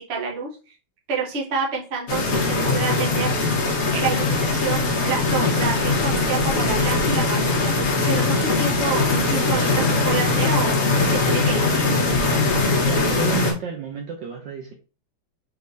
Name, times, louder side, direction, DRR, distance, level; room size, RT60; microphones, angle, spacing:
voice 1, 0.1-0.5 1.1-3.3 3.9-7.7 8.1-10.8 11.1-12.2, right 4 dB, 40° right, -2 dB, 1.0 m, -28 dB
sound 1, 2.1-13.5, left 3 dB, 50° left, 1.1 m, -21 dB
voice 2, 12.8-14.7, right 6 dB, 70° right, 2 dB, 1.2 m, -31 dB
4.5 x 3.5 x 2.6 m, 0.34 s
omnidirectional pair, 2.3 m